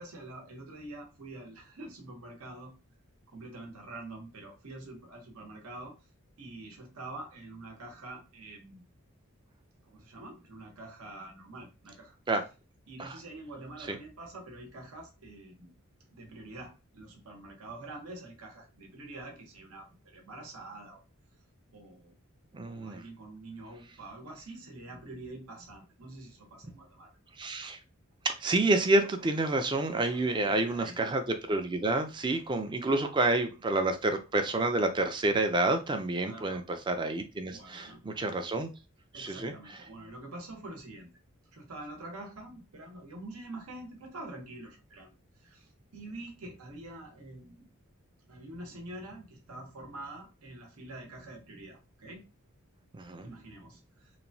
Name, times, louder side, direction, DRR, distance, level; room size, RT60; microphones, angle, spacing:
voice 1, 0.0-2.7 3.3-5.9 6.4-8.8 9.9-12.1 12.9-15.7 16.1-21.0 21.7-22.1 22.6-27.1 30.1-30.9 32.8-33.0 36.3-36.6 37.5-38.0 39.1-41.1 41.5-45.1 45.4-47.6 48.3-52.2 53.2-53.8, right 2 dB, 80° right, 0.9 m, -46 dB
voice 2, 22.5-23.0 27.4-27.8 28.2-38.7 39.1-39.8 52.9-53.3, right 2 dB, 20° right, 0.4 m, -29 dB
3.0 x 2.1 x 2.6 m
head